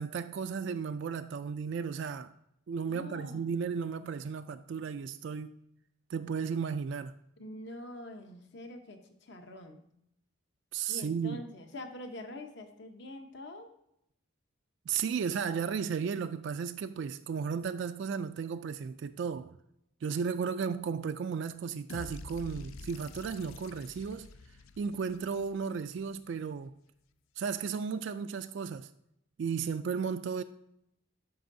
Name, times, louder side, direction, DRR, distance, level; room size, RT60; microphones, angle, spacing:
voice 1, 0.0-2.3 2.7-5.6 6.1-7.1 10.7-11.4 14.9-19.5 20.0-24.3 24.8-26.7 27.4-28.9 29.4-30.4, right 6 dB, 60° right, 0.3 m, -34 dB
voice 2, 2.9-3.4 3.7-4.2 7.4-9.9 10.9-13.7, left 1 dB, 55° left, 0.9 m, -45 dB
sound 1, 21.9-26.0, left 3 dB, 85° left, 0.4 m, -48 dB
12.5 x 5.4 x 2.6 m
head